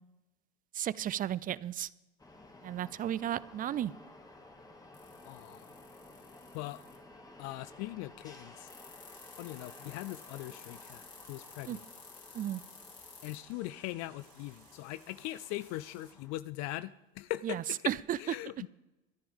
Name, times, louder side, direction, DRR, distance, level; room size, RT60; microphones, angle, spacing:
voice 1, 0.7-1.9 2.6-3.9 11.7-11.8 12.3-12.6 17.4-18.2, right 11 dB, 25° right, 0.4 m, -34 dB
sound 1, 2.2-16.4, left 2 dB, 10° left, 2.1 m, -55 dB
sound 2, 4.9-7.0 8.7-13.4 14.2-16.1, left 6 dB, 35° left, 3.7 m, -54 dB
voice 2, 5.3-5.7 6.5-6.8 7.4-8.7 9.4-11.8 13.2-17.8 18.2-18.7, left 16 dB, 55° left, 0.5 m, -41 dB
sound 3, 9.1-16.2, right 7 dB, 45° right, 2.7 m, -64 dB
23.0 x 10.0 x 3.6 m
hypercardioid pair, 100°, 33 cm